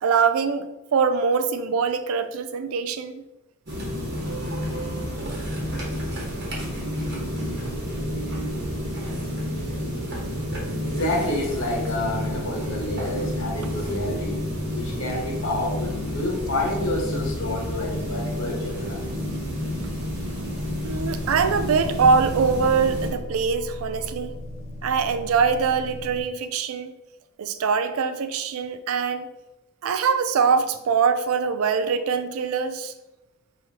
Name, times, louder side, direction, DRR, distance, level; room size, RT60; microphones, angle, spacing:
voice 1, 0.0-3.2 4.5-4.6 20.8-24.3 24.8-26.9 27.4-29.3 29.8-32.9, right 5 dB, 85° right, 10 dB, 0.4 m, -23 dB
sound 1, 3.7-23.1, equal, 55° right, 1.1 m, -30 dB
sound 2, 7.6-26.2, left 1 dB, 30° left, 0.9 m, -41 dB
voice 2, 10.8-14.4 14.7-19.0, left 1 dB, 70° left, -1 dB, 1.0 m, -28 dB
4.7 x 3.1 x 2.9 m, 1.0 s
head